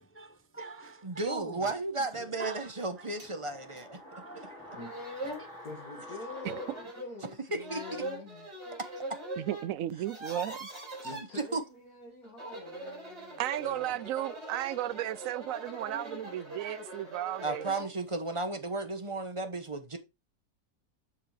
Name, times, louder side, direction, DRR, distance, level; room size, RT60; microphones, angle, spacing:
voice 1, 0.0-1.7 2.1-3.2 3.5-5.0 5.4-5.6, right 2 dB, 15° left, 0.4 m, -44 dB
voice 2, 1.0-4.0 7.5-7.8 11.0-11.1 11.5-11.6 17.4-20.0, right 2 dB, 25° right, 0.9 m, -34 dB
voice 3, 1.9-2.5 4.7-4.9 5.6-8.5 10.5-10.6 11.0-14.0, left 3 dB, 70° left, 2.6 m, -46 dB
sound 1, 2.6-7.8 8.1-8.2, left 1 dB, 45° left, 4.3 m, -48 dB
sound 2, 3.2-3.3 3.8-3.9 4.5-4.6 4.8-5.5 6.3-7.1 7.6-9.7 9.9-11.2 12.2-17.9, right 1 dB, 45° right, 4.3 m, -42 dB
voice 4, 9.4-10.7 13.4-17.7, right 13 dB, 70° right, 0.9 m, -34 dB
7.4 x 6.9 x 3.3 m
omnidirectional pair, 1.6 m